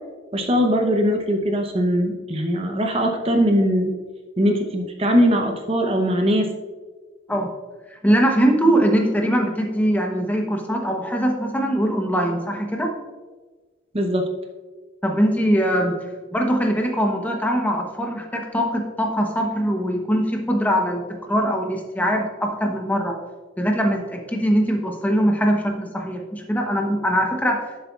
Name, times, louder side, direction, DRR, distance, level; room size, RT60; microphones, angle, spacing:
voice 1, 0.3-3.9 4.4-6.5 13.9-14.3, equal, 30° right, 4 dB, 0.8 m, -20 dB
voice 2, 7.9-12.9 15.0-16.0 16.3-23.2 23.6-27.6, equal, 10° left, 2 dB, 0.9 m, -22 dB
11.0 x 7.7 x 2.4 m, 1.3 s
head